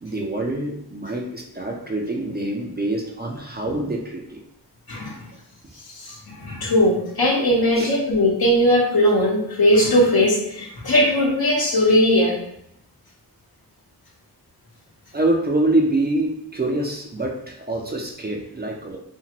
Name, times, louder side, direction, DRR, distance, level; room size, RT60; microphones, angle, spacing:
voice 1, 0.0-4.4 7.8-7.9 15.1-19.0, right 2 dB, 25° right, 0 dB, 0.5 m, -25 dB
voice 2, 4.9-5.2 5.8-12.3, left 1 dB, 65° left, -3 dB, 1.0 m, -19 dB
2.7 x 2.5 x 2.9 m, 0.75 s
cardioid pair, 55°, 39 cm